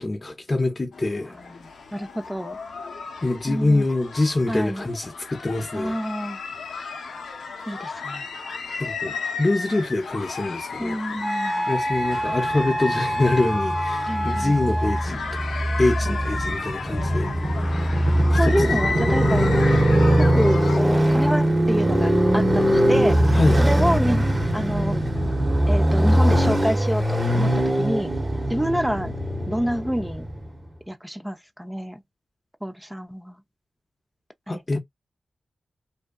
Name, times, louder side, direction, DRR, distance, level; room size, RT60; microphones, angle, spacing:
voice 1, 0.0-1.3 3.2-5.9 8.8-11.0 11.7-15.2 15.8-17.3 18.3-18.8 23.3-23.6 34.5-34.8, left 2 dB, 40° left, 0.6 m, -24 dB
sound 1, 0.9-20.8, left 4 dB, 85° left, 0.5 m, -34 dB
voice 2, 1.3-2.6 3.4-3.8 4.5-4.8 5.7-6.4 7.7-8.3 10.8-11.7 14.1-14.6 16.0-16.4 18.3-19.5 20.1-24.3 24.5-25.0 25.7-28.1 28.5-29.1 29.4-30.3 30.9-32.0 32.6-33.4 34.5-34.8, equal, 5° right, 0.5 m, -28 dB
Wind instrument woodwind instrument, 11.2-15.1, right 1 dB, 90° right, 1.0 m, -27 dB
Motorcycle, 12.3-30.5, equal, 30° right, 1.0 m, -21 dB
2.6 x 2.2 x 2.3 m
cardioid pair, 40°, 0 cm